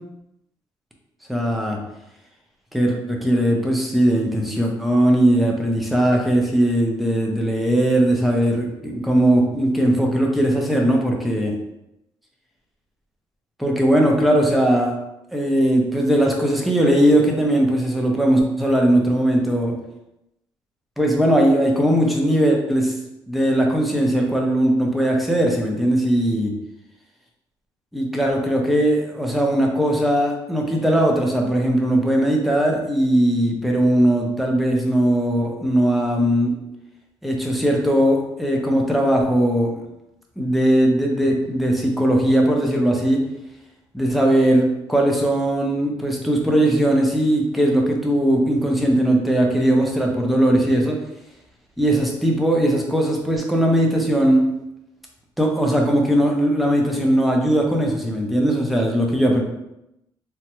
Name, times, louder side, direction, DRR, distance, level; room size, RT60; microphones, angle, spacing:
voice 1, 1.3-1.8 2.7-11.5 13.6-15.0 15.3-19.8 21.0-22.9 23.3-26.5 27.9-36.5 37.2-39.8 40.4-43.2 43.9-51.0 51.8-54.4 55.4-59.4, right 1 dB, ahead, 0 dB, 0.4 m, -19 dB
3.3 x 2.0 x 2.9 m, 0.87 s
cardioid pair, 175°, 9 cm